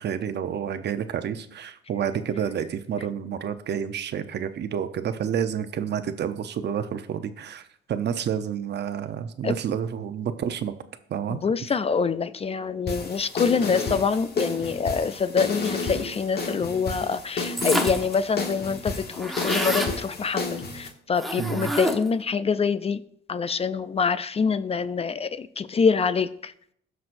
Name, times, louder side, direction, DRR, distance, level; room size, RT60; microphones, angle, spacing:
voice 1, 0.0-10.7 11.1-11.7 21.4-21.7, right 8 dB, 60° right, 10 dB, 0.8 m, -29 dB
voice 2, 11.3-23.0 23.3-26.5, left 5 dB, 30° left, 15 dB, 0.4 m, -25 dB
sound 1, 12.9-20.9, left 3 dB, 55° left, 1.4 m, -31 dB
sound 2, 17.6-18.1 18.5-18.6 18.8-20.0 21.2-22.2, equal, ahead, 1.2 m, -28 dB
17.0 x 6.2 x 2.6 m, 0.70 s
cardioid pair, 90°, 20 cm